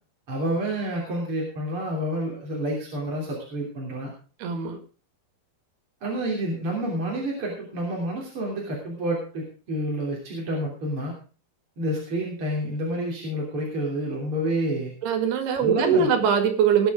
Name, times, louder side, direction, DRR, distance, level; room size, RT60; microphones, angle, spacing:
voice 1, 0.3-4.1 6.0-11.2 11.8-14.9 15.6-16.1, right 1 dB, 35° right, -3 dB, 3.7 m, -29 dB
voice 2, 4.4-4.8 15.0-16.9, right 7 dB, 90° right, 7 dB, 4.0 m, -22 dB
19.5 x 7.2 x 4.9 m, 0.38 s
omnidirectional pair, 4.5 m